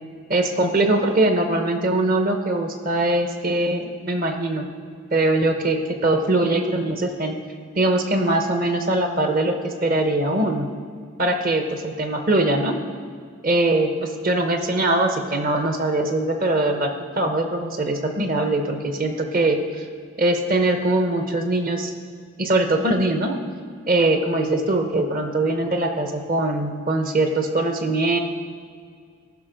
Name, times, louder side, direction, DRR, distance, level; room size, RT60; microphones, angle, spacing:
voice 1, 0.3-4.7 5.1-7.4 7.7-10.7 11.2-12.8 13.4-19.9 20.2-21.9 22.4-23.4 23.9-28.2, right 2 dB, 40° right, 6 dB, 0.9 m, -22 dB
14.5 x 6.1 x 5.1 m, 2.1 s
head